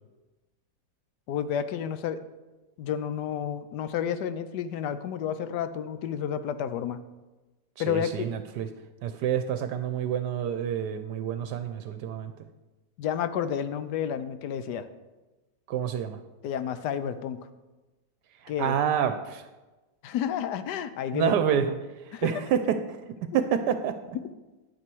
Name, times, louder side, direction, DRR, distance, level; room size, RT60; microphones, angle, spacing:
voice 1, 1.3-2.2 2.8-7.0 7.8-8.3 13.0-14.9 16.4-17.4 18.5-18.7 20.0-21.3 22.1-22.3, left 9 dB, 75° left, 12 dB, 1.2 m, -30 dB
voice 2, 7.8-8.7 9.0-12.3 15.7-16.2 18.4-19.5 21.1-21.7 22.0-23.9, right 8 dB, 80° right, 9 dB, 1.2 m, -28 dB
9.3 x 8.9 x 4.6 m, 1.1 s
omnidirectional pair, 1.9 m